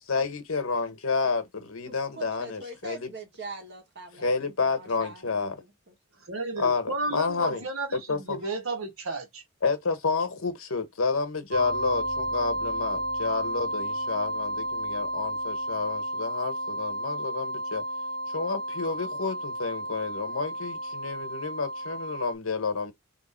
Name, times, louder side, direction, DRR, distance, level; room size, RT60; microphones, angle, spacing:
voice 1, 0.1-3.1 4.2-5.6 6.6-7.6 8.1-8.4 9.6-17.8 18.3-22.9, left 4 dB, 75° left, 1.1 m, -30 dB
voice 2, 1.9-6.0, right 3 dB, 55° right, 1.5 m, -43 dB
voice 3, 6.2-9.4, right 2 dB, 75° right, 1.6 m, -33 dB
sound 1, 11.5-22.3, right 1 dB, 40° right, 0.9 m, -32 dB
3.4 x 3.1 x 4.4 m
head